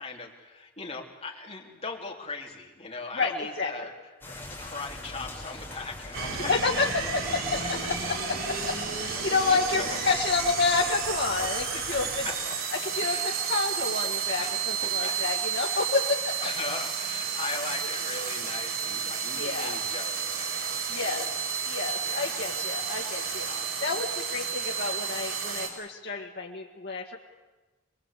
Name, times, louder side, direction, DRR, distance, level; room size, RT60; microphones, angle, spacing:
voice 1, 0.0-3.9 4.3-6.5 9.3-10.0 11.3-12.6 13.0-13.4 14.4-14.6 15.0-15.2 15.6-15.8 16.4-21.4 22.0-22.4 23.4-24.0, left 3 dB, 30° left, 0 dB, 3.5 m, -39 dB
voice 2, 3.1-3.9 6.5-12.3 12.8-16.4 19.3-19.8 20.9-21.3 21.6-23.5 23.8-27.2, left 4 dB, 55° left, -1 dB, 1.9 m, -29 dB
sound 1, 4.2-12.3, left 1 dB, 10° left, 7.2 m, -42 dB
sound 2, 6.1-25.7, right 7 dB, 85° right, 5.1 m, -32 dB
24.0 x 22.5 x 8.4 m, 1.2 s
head